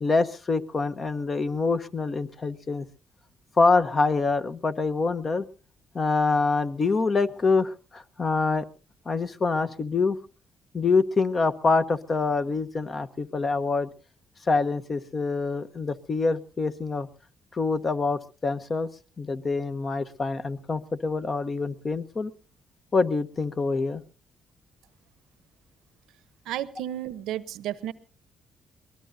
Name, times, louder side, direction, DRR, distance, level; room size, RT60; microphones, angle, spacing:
voice 1, 0.0-2.9 3.6-5.4 5.9-8.6 9.1-10.2 10.7-13.9 14.5-17.1 17.5-18.9 19.2-22.3 22.9-24.0, left 4 dB, 35° left, 11 dB, 1.0 m, -25 dB
voice 2, 26.5-27.9, right 12 dB, 90° right, 18 dB, 0.8 m, -32 dB
23.0 x 19.5 x 2.7 m, 0.35 s
cardioid pair, 90°, 0 cm